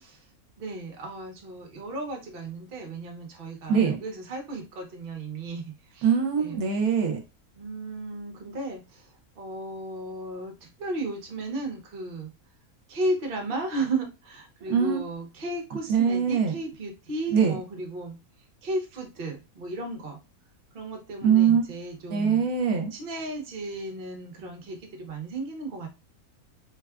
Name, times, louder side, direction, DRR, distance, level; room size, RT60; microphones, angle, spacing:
voice 1, 0.6-5.6 5.9-6.1 6.4-6.6 7.6-9.1 9.4-12.3 12.9-18.1 18.6-20.2 20.7-22.4 22.9-25.9, right 2 dB, 45° right, 2 dB, 0.9 m, -34 dB
voice 2, 3.7-4.0 6.0-7.2 14.6-15.0 15.9-16.5 17.3-17.6 21.2-21.7 22.1-22.9, right 7 dB, 75° right, 4 dB, 1.1 m, -23 dB
3.5 x 2.3 x 2.3 m, 0.27 s
omnidirectional pair, 1.6 m